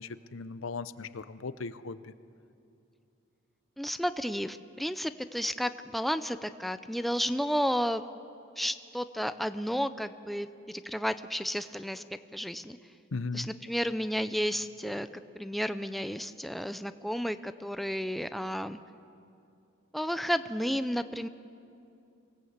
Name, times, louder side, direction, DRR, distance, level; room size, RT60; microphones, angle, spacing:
voice 1, 0.0-2.1 13.1-13.5, left 4 dB, 80° left, 14 dB, 0.7 m, -37 dB
voice 2, 3.8-8.0 8.6-12.0 12.3-12.8 13.3-15.1 15.3-18.8 19.9-21.3, equal, ahead, 11 dB, 0.5 m, -32 dB
24.5 x 17.5 x 8.1 m, 2.6 s
head